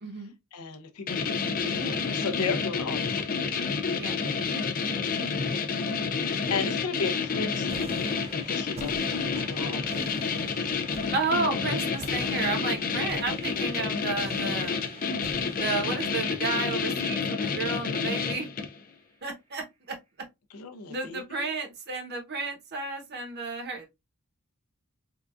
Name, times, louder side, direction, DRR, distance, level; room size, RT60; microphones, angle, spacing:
voice 1, 0.0-0.3 3.9-4.2 11.1-14.8 15.5-18.5 19.2-20.0 20.9-23.9, right 3 dB, 50° right, 0.9 m, -32 dB
voice 2, 0.5-3.5 5.0-5.3 5.7-6.1 6.5-10.7 11.9-12.0 13.3-13.6 20.5-21.5, left 4 dB, 90° left, 0.6 m, -36 dB
sound 1, 1.1-18.8, left 5 dB, 40° left, 0.5 m, -29 dB
sound 2, 7.7-18.7, right 3 dB, 25° right, 0.4 m, -46 dB
3.7 x 2.3 x 2.4 m
head